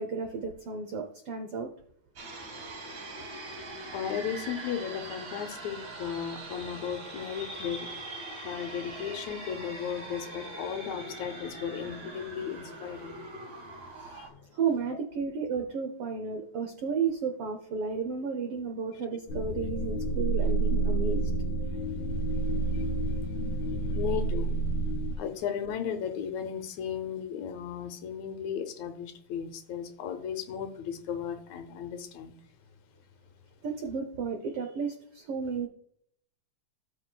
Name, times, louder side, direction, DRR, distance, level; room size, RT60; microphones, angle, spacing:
voice 1, 0.0-1.7 13.9-14.2 14.5-21.3 33.6-35.7, right 5 dB, 90° right, 1.2 m, -33 dB
sound 1, 2.2-14.3, right 2 dB, 45° right, 2.0 m, -42 dB
voice 2, 3.9-7.9 8.4-13.2 14.2-14.5 22.7-22.9 23.9-24.5 25.2-32.3, left 8 dB, 75° left, 2.0 m, -35 dB
sound 2, 19.3-25.1, right 3 dB, 50° left, 1.8 m, -29 dB
16.5 x 6.6 x 2.2 m
omnidirectional pair, 3.5 m